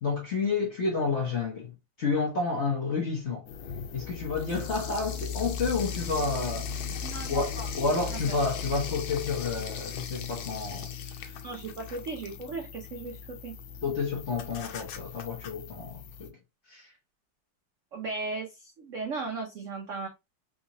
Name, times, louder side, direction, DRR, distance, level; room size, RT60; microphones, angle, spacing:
voice 1, 0.0-1.7 2.0-3.4 3.9-11.3 13.8-16.4 16.7-16.9, left 4 dB, 55° left, 0.8 m, -30 dB
sound 1, 3.5-16.3, left 6 dB, 80° left, 1.4 m, -37 dB
voice 2, 7.0-7.7 8.1-8.4 11.4-13.5 17.9-20.1, right 3 dB, 80° right, 0.6 m, -36 dB
3.6 x 2.8 x 2.9 m
omnidirectional pair, 2.2 m